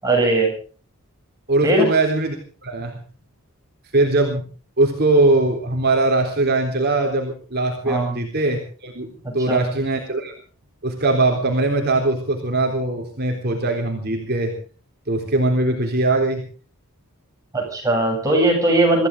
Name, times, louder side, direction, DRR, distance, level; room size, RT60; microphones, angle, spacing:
voice 1, 0.0-0.5 1.6-1.9 7.8-8.2 9.2-9.6 17.5-19.1, right 2 dB, 15° right, 0 dB, 7.8 m, -19 dB
voice 2, 1.5-2.4 2.6-3.0 3.9-4.4 4.8-10.3 10.8-14.5 15.1-16.5, right 2 dB, 45° right, 2 dB, 3.7 m, -21 dB
25.0 x 15.5 x 3.8 m, 0.39 s
head